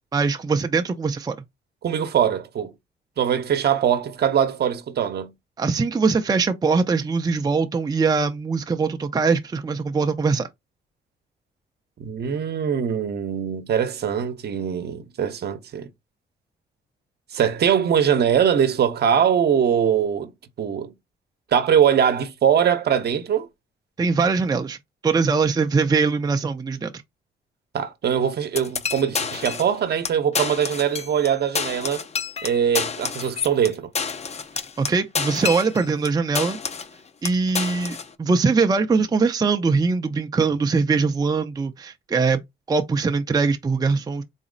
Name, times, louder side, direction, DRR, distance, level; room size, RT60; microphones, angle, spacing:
voice 1, 0.1-1.4 5.6-10.5 24.0-24.8 25.0-26.9 34.8-36.6 37.2-42.4 42.7-44.2, right 4 dB, 20° right, 0.5 m, -22 dB
voice 2, 1.8-2.7 3.2-5.3 12.0-15.9 17.3-20.3 20.6-20.9 21.5-23.5 27.7-32.0 32.4-33.9, right 8 dB, 55° right, 0.8 m, -22 dB
sound 1, 28.6-29.7 30.0-30.1 30.3-31.3 31.5-36.1 36.4-36.9 37.2-38.1, left 6 dB, 35° left, 0.6 m, -28 dB
4.1 x 2.0 x 3.8 m
cardioid pair, 90°, 20 cm